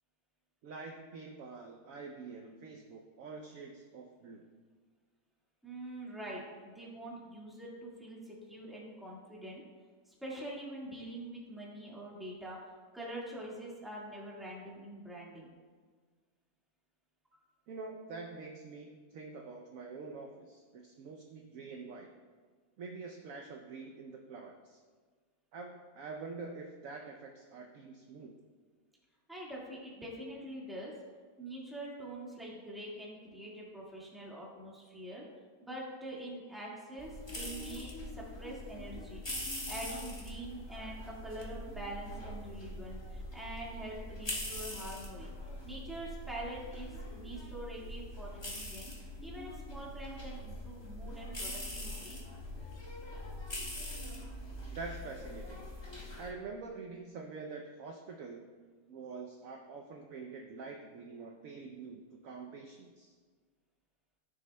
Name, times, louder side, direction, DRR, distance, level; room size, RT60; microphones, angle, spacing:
voice 1, 0.6-4.4 17.7-22.1 22.8-24.8 25.5-28.3 54.7-55.6 56.2-58.5 58.9-63.1, right 4 dB, 65° right, 2 dB, 0.9 m, -46 dB
voice 2, 5.6-9.6 10.0-15.5 29.3-30.9 31.4-35.2 35.6-39.2 39.7-45.3 45.6-48.9 49.2-52.2, right 1 dB, ahead, -5 dB, 1.5 m, -45 dB
sound 1, 37.0-56.3, left 1 dB, 15° left, 1.2 m, -43 dB
14.0 x 6.4 x 2.2 m, 1.5 s
omnidirectional pair, 1.8 m